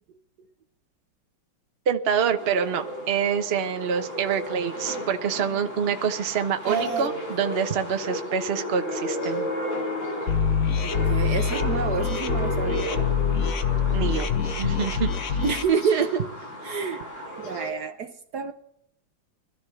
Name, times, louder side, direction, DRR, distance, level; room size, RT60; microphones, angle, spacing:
voice 1, 1.9-9.5 13.9-15.4, right 7 dB, 40° right, 6 dB, 1.0 m, -26 dB
sound 1, 2.4-17.7, equal, 40° left, 3.3 m, -33 dB
voice 2, 6.7-7.1 10.8-13.1 15.4-16.2 16.6-17.0 17.4-18.5, right 6 dB, 60° right, 7 dB, 1.2 m, -28 dB
sound 2, 10.3-15.6, left 6 dB, 55° left, 1.1 m, -25 dB
24.5 x 13.5 x 3.3 m, 0.73 s
omnidirectional pair, 2.1 m